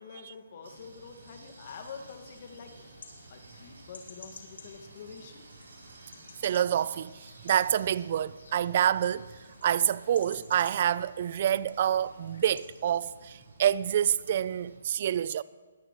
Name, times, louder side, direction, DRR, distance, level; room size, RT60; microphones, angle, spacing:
voice 1, 0.0-5.4, left 5 dB, 45° left, 1.8 m, -47 dB
sound 1, 0.6-14.8, right 2 dB, 80° right, 5.0 m, -54 dB
sound 2, 1.7-12.6, left 4 dB, 80° left, 2.8 m, -54 dB
voice 2, 6.4-9.3 9.6-15.4, right 10 dB, 40° right, 0.4 m, -27 dB
20.5 x 14.0 x 3.1 m
hypercardioid pair, 160°, 0 cm